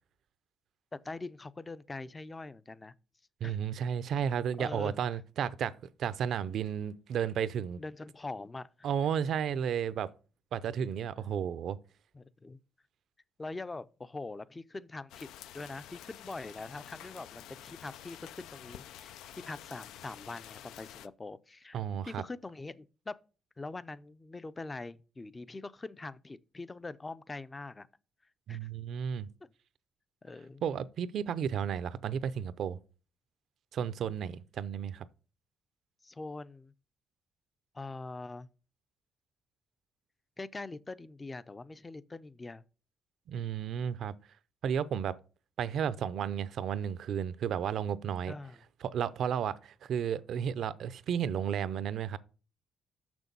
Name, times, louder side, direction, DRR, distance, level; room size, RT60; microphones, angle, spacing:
voice 1, 0.9-2.9 3.4-3.6 4.6-5.0 7.8-8.7 12.1-12.6 13.4-19.2 19.4-23.2 23.6-27.9 28.5-28.7 29.4-29.5 30.2-30.6 36.0-36.7 37.7-38.5 40.4-42.6 48.3-48.6, left 3 dB, 25° left, 0.5 m, -43 dB
voice 2, 3.4-5.7 6.0-7.8 8.8-10.1 10.5-11.8 21.7-22.2 28.5-29.3 30.6-32.8 33.7-35.1 43.3-44.1 44.6-45.1 45.6-48.3 48.8-52.2, right 8 dB, 70° right, 0.6 m, -33 dB
sound 1, 15.1-21.1, left 11 dB, 90° left, 0.4 m, -49 dB
6.6 x 6.1 x 5.3 m
cardioid pair, 90°, 0 cm